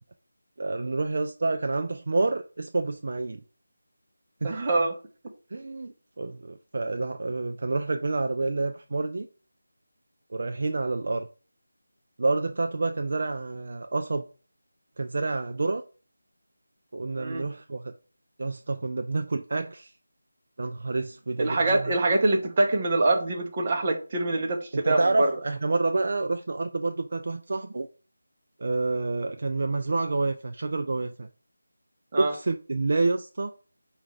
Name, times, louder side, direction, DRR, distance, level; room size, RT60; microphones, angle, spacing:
voice 1, 0.6-3.4 4.4-4.5 5.5-9.3 10.3-11.3 12.2-14.2 15.0-15.8 16.9-17.9 18.4-19.9 20.6-21.9 24.7-27.9 28.6-31.3 32.2-33.5, right 3 dB, 50° right, 0.3 m, -28 dB
voice 2, 4.4-5.0 17.2-17.5 21.4-25.3 32.1-32.3, right 2 dB, 30° right, 0.7 m, -24 dB
4.9 x 2.4 x 3.2 m
figure-of-eight pair, 165°, 0 cm